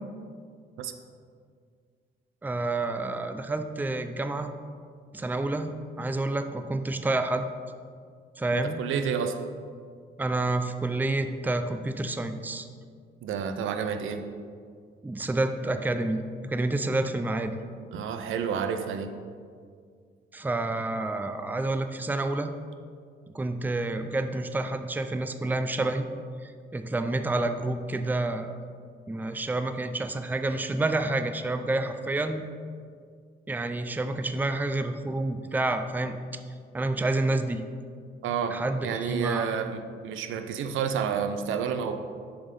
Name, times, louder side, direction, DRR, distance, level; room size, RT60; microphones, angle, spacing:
voice 1, 2.4-4.5 5.1-7.5 8.4-8.8 10.2-12.7 15.0-17.6 20.3-22.5 23.3-26.1 26.4-28.6 29.1-32.5 33.5-36.4 36.7-37.6 38.5-39.6, right 2 dB, 10° right, 8 dB, 0.5 m, -29 dB
voice 2, 8.5-9.4 13.2-14.2 17.9-19.2 38.2-41.9, right 7 dB, 80° right, 7 dB, 0.6 m, -30 dB
7.0 x 5.4 x 5.3 m, 2.1 s
cardioid pair, 90°, 20 cm